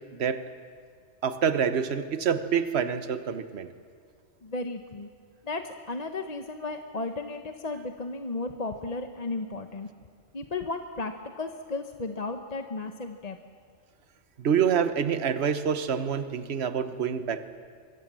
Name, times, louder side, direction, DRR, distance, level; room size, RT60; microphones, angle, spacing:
voice 1, 1.2-3.7 14.4-17.5, right 7 dB, 55° right, 10 dB, 1.3 m, -26 dB
voice 2, 4.4-5.1 5.4-9.9 10.3-13.4, left 3 dB, 35° left, 6 dB, 1.0 m, -34 dB
25.0 x 22.0 x 7.5 m, 2.1 s
omnidirectional pair, 1.3 m